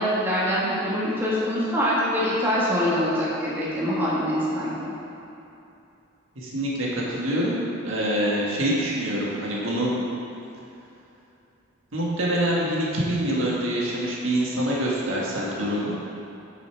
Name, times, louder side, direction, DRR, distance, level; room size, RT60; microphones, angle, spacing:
voice 1, 0.0-4.9, equal, 10° right, -8 dB, 1.7 m, -24 dB
voice 2, 6.3-9.9 11.9-16.0, right 1 dB, 75° right, -5 dB, 1.7 m, -25 dB
8.3 x 6.8 x 4.7 m, 2.7 s
head